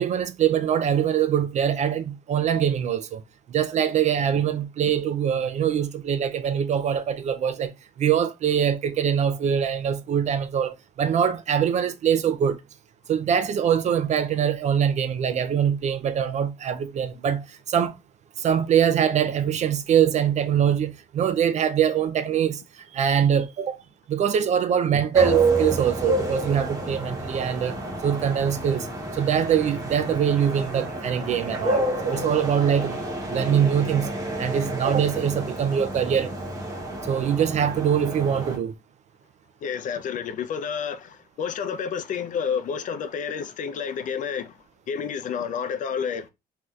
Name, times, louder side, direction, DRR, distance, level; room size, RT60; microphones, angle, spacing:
voice 1, 0.0-3.2 3.5-7.7 8.0-12.6 13.1-17.9 18.4-23.8 24.1-27.8 28.0-28.9 29.1-33.0 33.3-34.1 34.4-36.3 37.0-38.7, right 8 dB, 45° right, 0.4 m, -23 dB
sound 1, 25.1-38.6, right 2 dB, 20° right, 0.9 m, -29 dB
voice 2, 39.6-46.3, left 7 dB, 50° left, 0.5 m, -30 dB
3.1 x 2.8 x 2.3 m
cardioid pair, 110°, 17 cm